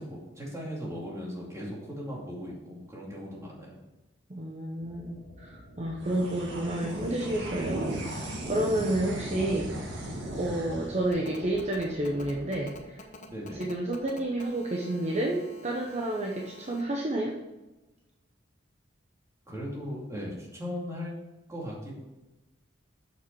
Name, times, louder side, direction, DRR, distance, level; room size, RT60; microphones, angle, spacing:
voice 1, 0.0-3.8 13.3-13.7 19.5-21.1 21.5-21.9, equal, 15° right, -4 dB, 2.4 m, -38 dB
voice 2, 4.3-9.7 10.4-13.0 13.5-17.4, right 1 dB, 35° right, -1 dB, 0.9 m, -30 dB
sound 1, 4.8-12.8, right 1 dB, 80° right, 2.0 m, -48 dB
sound 2, 6.0-12.7, right 1 dB, 60° right, 1.7 m, -37 dB
Telephone, 11.1-16.8, left 2 dB, 40° left, 1.1 m, -48 dB
7.4 x 6.5 x 4.7 m, 1.1 s
head